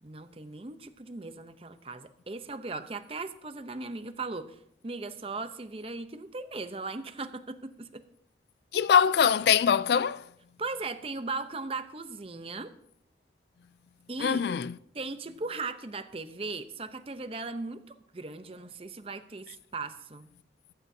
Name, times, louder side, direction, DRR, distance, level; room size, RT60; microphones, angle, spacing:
voice 1, 0.0-4.6 4.8-8.0 10.6-12.7 14.1-14.4 14.9-20.3, right 3 dB, 30° right, 0.7 m, -38 dB
voice 2, 8.7-10.3 14.2-14.8, left 7 dB, 65° left, 0.3 m, -23 dB
15.0 x 13.0 x 2.7 m
head